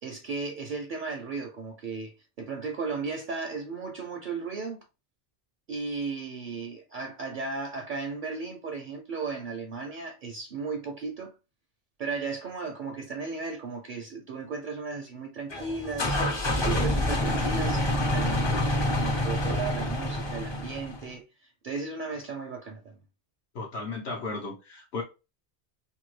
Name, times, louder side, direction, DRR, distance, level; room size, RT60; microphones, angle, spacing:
voice 1, 0.0-4.8 5.7-11.3 12.0-16.2 16.5-23.0, right 4 dB, 60° right, 0.6 m, -35 dB
sound 1, 15.5-21.1, left 1 dB, 35° left, 0.5 m, -27 dB
voice 2, 23.5-25.0, left 3 dB, 75° left, 1.0 m, -35 dB
2.8 x 2.3 x 3.1 m
omnidirectional pair, 1.1 m